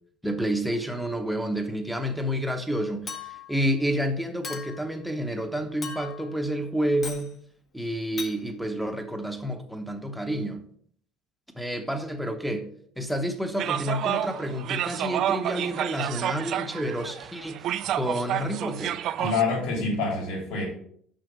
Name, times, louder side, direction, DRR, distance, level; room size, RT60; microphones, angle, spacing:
voice 1, 0.2-7.4 7.7-10.6 11.5-12.7 13.0-19.0, equal, ahead, 4 dB, 0.9 m, -29 dB
Chink clink, 3.1-3.6 4.4-4.9 5.8-6.3 7.0-7.3 8.2-8.4, left 5 dB, 30° left, 1.0 m, -38 dB
sound 1, 13.6-19.4, right 11 dB, 50° right, 0.3 m, -30 dB
voice 2, 19.2-20.6, left 4 dB, 85° left, -1 dB, 3.6 m, -26 dB
6.4 x 5.8 x 5.2 m, 0.63 s
cardioid pair, 150°, 0 cm